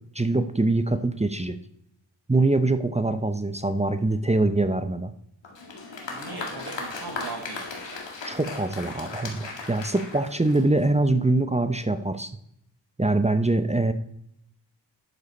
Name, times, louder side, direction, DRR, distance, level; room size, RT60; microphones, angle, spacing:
voice 1, 0.1-1.6 2.3-5.1 8.2-12.3 13.0-13.9, right 2 dB, 15° right, 10 dB, 0.8 m, -23 dB
Applause, 5.4-11.0, left 3 dB, 75° left, 2.1 m, -37 dB
voice 2, 6.0-8.0, right 3 dB, 55° right, 1 dB, 1.6 m, -39 dB
11.0 x 6.9 x 4.3 m, 0.75 s
cardioid pair, 45°, 44 cm